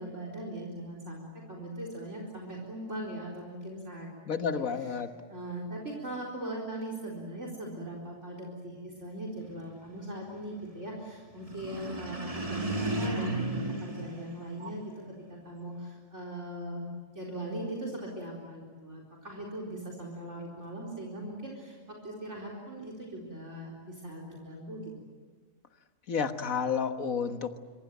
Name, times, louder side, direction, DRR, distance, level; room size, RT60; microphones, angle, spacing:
voice 1, 0.0-4.9 5.3-14.9 15.3-16.9 17.1-24.8, right 1 dB, 60° right, 0 dB, 4.6 m, -40 dB
voice 2, 4.3-5.1 26.1-27.6, left 6 dB, 80° left, 7 dB, 1.9 m, -30 dB
sound 1, 11.4-15.0, right 2 dB, 25° right, 2.4 m, -34 dB
26.0 x 23.5 x 9.3 m, 1.4 s
omnidirectional pair, 1.4 m